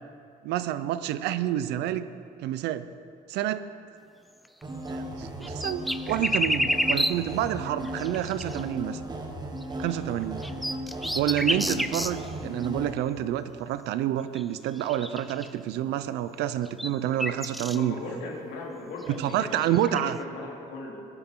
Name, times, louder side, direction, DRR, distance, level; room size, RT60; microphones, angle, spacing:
voice 1, 0.4-2.1 2.4-2.9 3.3-3.7 4.9-9.0 9.8-10.4 11.1-18.0 19.1-20.2, right 12 dB, 85° right, 13 dB, 0.7 m, -28 dB
sound 1, 4.5-4.6 4.9-5.0 5.4-7.4 7.8-8.6 9.6-9.7 10.2-12.3 12.6-12.7 14.3-14.4 14.8-15.5 16.4-17.8 19.0-20.1, equal, ahead, 0.4 m, -30 dB
sound 2, 4.6-12.9, right 1 dB, 25° right, 1.6 m, -36 dB
voice 2, 17.7-21.0, left 3 dB, 90° left, -3 dB, 3.5 m, -38 dB
20.5 x 10.5 x 3.8 m, 2.3 s
cardioid pair, 110°, 17 cm